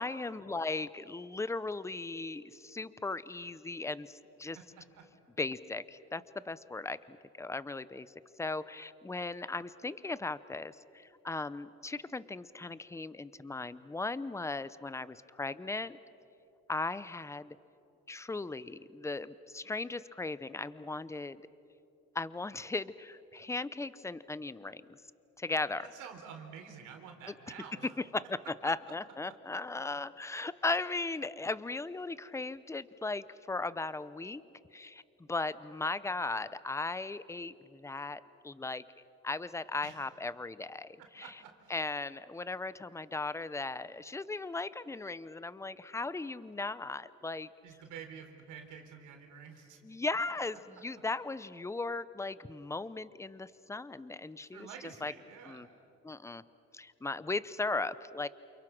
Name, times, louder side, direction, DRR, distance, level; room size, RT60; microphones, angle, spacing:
voice 1, 0.0-4.6 5.4-8.1 8.4-16.0 16.7-17.6 18.1-21.4 22.1-24.8 25.4-25.9 28.0-34.4 34.7-35.0 35.3-38.8 39.2-41.3 41.7-47.5 49.8-54.7 55.0-55.1 55.4-55.7 56.0-56.4 56.7-58.3, left 3 dB, 10° left, 16 dB, 0.7 m, -37 dB
voice 2, 25.8-27.9 39.8-40.0 41.0-41.7 47.6-49.8 54.5-55.7, right 7 dB, 85° right, 3 dB, 4.0 m, -49 dB
29.0 x 28.5 x 6.0 m, 2.8 s
cardioid pair, 120°, 30 cm